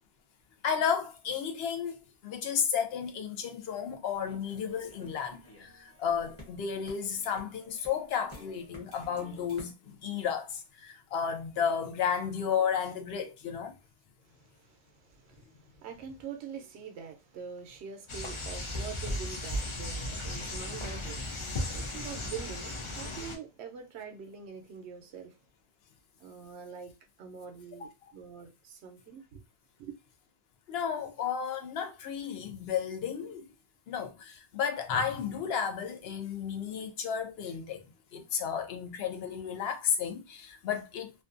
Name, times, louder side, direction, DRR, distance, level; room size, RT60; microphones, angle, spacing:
voice 1, 0.6-2.0 2.2-13.7 30.7-33.5 33.9-37.8 38.1-41.1, left 7 dB, 65° left, 0.8 m, -33 dB
sound 1, 4.1-9.7, left 1 dB, 15° left, 0.7 m, -52 dB
voice 2, 14.2-25.4 26.2-26.9 27.2-29.4 29.8-29.9, right 7 dB, 75° right, 0.8 m, -45 dB
sound 2, 18.1-23.4, left 1 dB, 50° left, 0.3 m, -36 dB
2.6 x 2.2 x 2.4 m
omnidirectional pair, 1.2 m